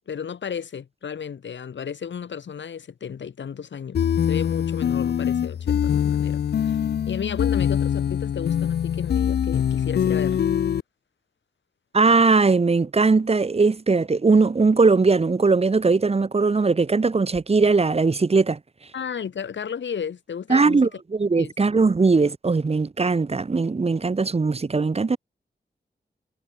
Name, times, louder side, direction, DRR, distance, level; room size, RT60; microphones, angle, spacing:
voice 1, 0.1-10.4 18.9-20.8 21.4-21.5, left 7 dB, 85° left, 1.2 m, -34 dB
sound 1, 3.9-10.8, left 9 dB, 65° left, 0.4 m, -23 dB
voice 2, 11.9-18.6 20.5-25.2, right 4 dB, 35° right, 0.7 m, -20 dB
cardioid pair, 45°, 19 cm